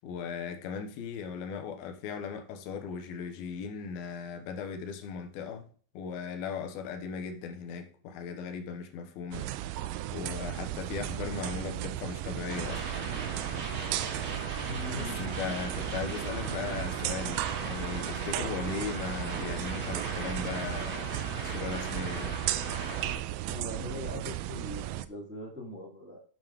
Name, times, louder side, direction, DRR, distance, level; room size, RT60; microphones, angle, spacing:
voice 1, 0.0-5.7 5.9-9.5 10.1-12.9 15.0-22.4, left 6 dB, 90° left, 2.9 m, -38 dB
sound 1, 9.3-25.1, right 14 dB, 85° right, 2.3 m, -35 dB
sound 2, 12.5-23.2, right 3 dB, 40° right, 2.3 m, -38 dB
voice 2, 14.6-15.2 23.4-26.2, left 2 dB, 10° right, 0.7 m, -41 dB
9.3 x 7.8 x 3.1 m
omnidirectional pair, 4.2 m